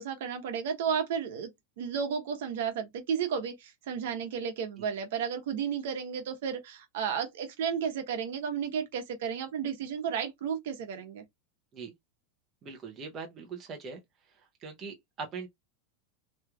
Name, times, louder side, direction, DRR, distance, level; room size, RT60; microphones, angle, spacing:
voice 1, 0.0-1.5 1.8-11.2, right 7 dB, 65° right, 1.0 m, -33 dB
voice 2, 12.6-14.0 14.6-15.5, right 5 dB, 20° right, 0.7 m, -41 dB
3.1 x 2.9 x 2.3 m
supercardioid pair, 175°, 0 cm